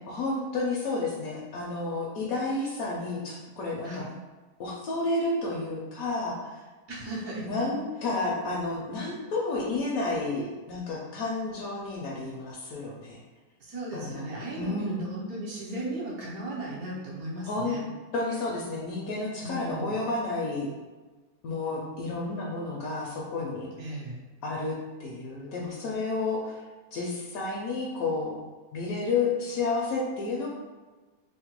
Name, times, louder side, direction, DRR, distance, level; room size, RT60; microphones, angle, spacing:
voice 1, 0.1-4.0 4.6-6.5 7.4-13.2 13.9-15.0 17.5-17.8 18.1-20.7 21.4-23.7 24.4-26.6 26.9-28.4 28.7-30.5, left 3 dB, 70° left, -3 dB, 0.9 m, -31 dB
voice 2, 6.9-7.6 13.7-17.8 19.4-20.0 23.8-24.2, right 1 dB, 65° right, -5 dB, 1.1 m, -36 dB
2.9 x 2.1 x 2.9 m, 1.2 s
omnidirectional pair, 1.8 m